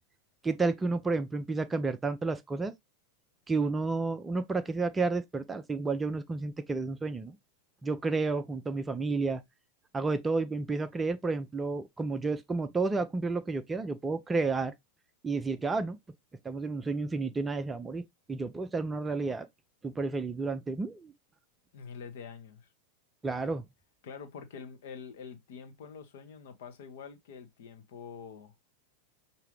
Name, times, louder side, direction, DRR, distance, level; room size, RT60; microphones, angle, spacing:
voice 1, 0.4-2.7 3.5-7.4 7.8-9.4 9.9-14.7 15.2-16.0 16.4-18.0 18.3-19.5 19.8-21.1 23.2-23.6, right 3 dB, 15° right, 0.5 m, -31 dB
voice 2, 21.7-22.7 24.0-28.5, left 6 dB, 55° left, 1.0 m, -46 dB
5.7 x 2.7 x 3.2 m
figure-of-eight pair, 90°, 0 cm